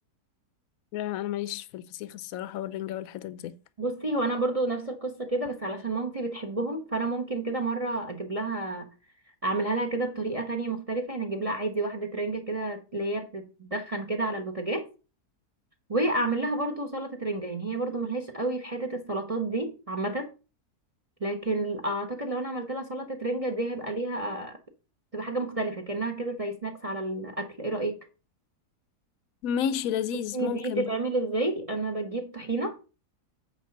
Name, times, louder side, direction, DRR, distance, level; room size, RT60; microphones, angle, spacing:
voice 1, 0.9-3.6 29.4-30.9, left 9 dB, 65° left, 1.0 m, -32 dB
voice 2, 3.8-8.9 9.4-14.8 15.9-20.3 21.2-24.6 25.1-28.0 30.3-32.8, right 2 dB, 25° right, 0.9 m, -30 dB
8.6 x 3.9 x 6.6 m
omnidirectional pair, 1.7 m